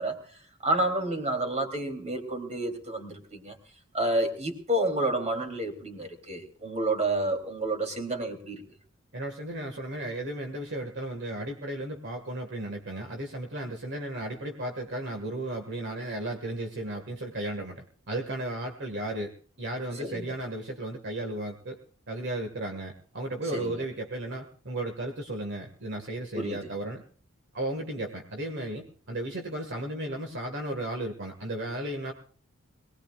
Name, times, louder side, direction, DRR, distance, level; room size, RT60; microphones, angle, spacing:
voice 1, 0.0-3.6 3.9-8.6 20.0-20.3 23.4-23.8 26.3-26.7, right 1 dB, 35° right, 5 dB, 3.4 m, -30 dB
voice 2, 9.1-19.3 19.6-21.8 22.1-27.0 27.5-32.1, right 1 dB, 60° right, 4 dB, 2.0 m, -34 dB
22.5 x 19.5 x 2.5 m, 0.42 s
head